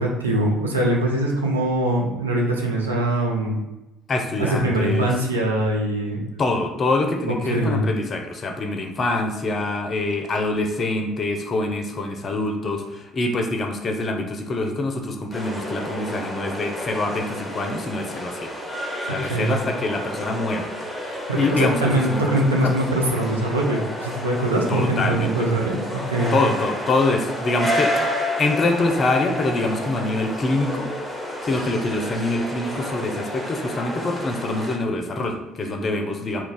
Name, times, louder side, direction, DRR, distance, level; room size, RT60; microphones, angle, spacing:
voice 1, 0.0-3.6 4.4-6.2 7.5-7.9 19.2-19.6 21.1-26.4, right 1 dB, 90° right, -1 dB, 0.4 m, -22 dB
voice 2, 4.1-5.1 6.4-18.5 19.0-20.7 21.3-22.7 24.7-25.5 26.3-27.9 28.4-30.9 31.4-36.4, left 2 dB, 40° left, 4 dB, 0.5 m, -25 dB
sound 1, 15.3-34.8, equal, ahead, 0.8 m, -30 dB
2.3 x 2.2 x 3.8 m, 0.99 s
figure-of-eight pair, 55°, 0 cm